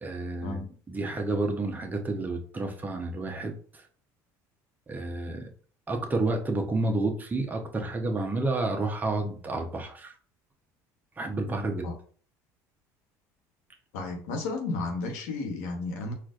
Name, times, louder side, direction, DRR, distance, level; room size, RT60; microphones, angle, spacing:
voice 1, 0.0-3.5 4.9-5.5 5.9-10.1 11.2-11.9, right 2 dB, 20° right, 3 dB, 0.7 m, -30 dB
voice 2, 13.9-16.1, left 3 dB, 85° left, 3 dB, 1.0 m, -33 dB
4.3 x 2.5 x 2.4 m, 0.44 s
supercardioid pair, 100°, 8 cm